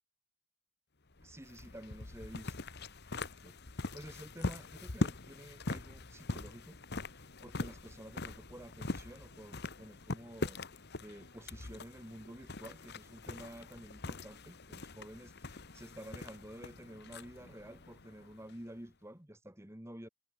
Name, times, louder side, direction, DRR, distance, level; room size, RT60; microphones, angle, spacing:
sound 1, 1.1-18.8, left 2 dB, 50° left, 1.4 m, -42 dB
voice 1, 1.2-2.6 3.4-6.8 7.4-10.6 11.0-20.1, right 1 dB, 10° right, 1.8 m, -51 dB
head